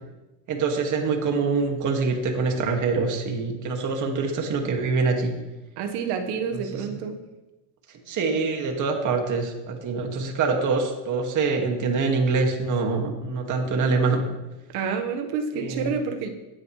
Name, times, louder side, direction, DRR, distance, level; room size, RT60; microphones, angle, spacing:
voice 1, 0.5-5.3 6.5-6.6 8.1-14.2 15.5-15.9, right 4 dB, 45° right, 3 dB, 2.1 m, -25 dB
voice 2, 5.8-7.2 14.7-16.3, right 6 dB, 70° right, 6 dB, 1.5 m, -28 dB
16.5 x 9.5 x 3.2 m, 1.1 s
cardioid pair, 120°, 41 cm